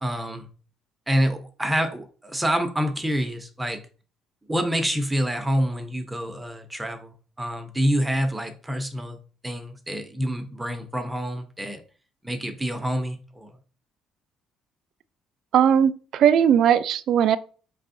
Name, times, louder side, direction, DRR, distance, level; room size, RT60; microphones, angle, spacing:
voice 1, 0.0-0.5 1.1-3.8 4.5-9.2 9.4-11.8 12.2-13.5, equal, 10° right, 0.5 m, -27 dB
voice 2, 15.5-17.4, right 9 dB, 65° right, 0.3 m, -18 dB
5.3 x 3.4 x 2.6 m
cardioid pair, 120°, 0 cm